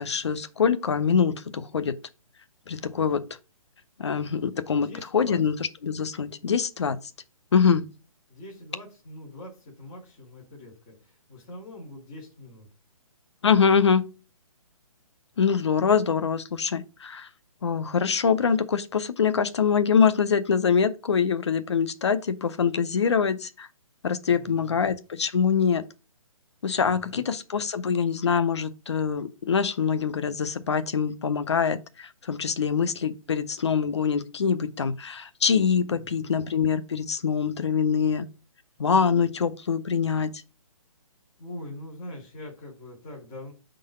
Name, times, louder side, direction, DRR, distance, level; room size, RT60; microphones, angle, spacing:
voice 1, 0.0-2.0 2.7-3.2 4.0-5.6 5.8-7.0 7.5-7.9 13.4-14.1 15.4-17.3 17.6-23.7 24.0-25.8 26.6-38.2 38.8-40.3, left 6 dB, 50° left, 0.6 m, -24 dB
voice 2, 4.8-5.4 8.3-12.7 24.3-24.9 26.7-27.2 35.9-36.3 41.4-43.5, left 1 dB, 5° left, 0.4 m, -43 dB
5.5 x 3.9 x 5.0 m
hypercardioid pair, 175°, 18 cm